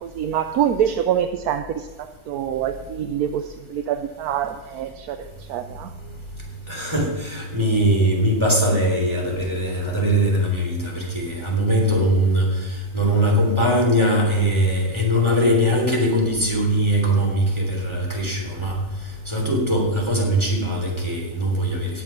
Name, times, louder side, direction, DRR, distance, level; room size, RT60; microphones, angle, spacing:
voice 1, 0.0-5.2 5.5-5.9, right 9 dB, 75° right, 8 dB, 1.2 m, -25 dB
voice 2, 6.7-12.5 12.9-18.7 19.3-21.9, equal, 15° right, -1 dB, 3.4 m, -21 dB
18.0 x 7.6 x 6.0 m, 1.2 s
omnidirectional pair, 1.7 m